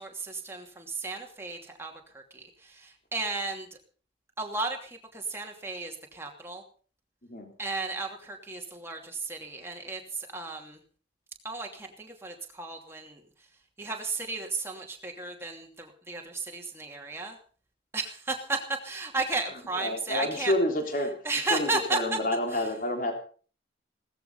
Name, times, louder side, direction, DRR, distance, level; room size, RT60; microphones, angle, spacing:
voice 1, 0.0-3.7 4.4-6.6 7.6-10.8 11.4-13.2 13.8-17.4 17.9-20.5 21.2-22.2 22.5-22.6, right 3 dB, 15° right, 1 dB, 2.7 m, -34 dB
voice 2, 19.8-21.1 21.5-23.1, left 1 dB, 45° left, 4 dB, 3.6 m, -28 dB
17.5 x 14.0 x 5.5 m, 0.42 s
head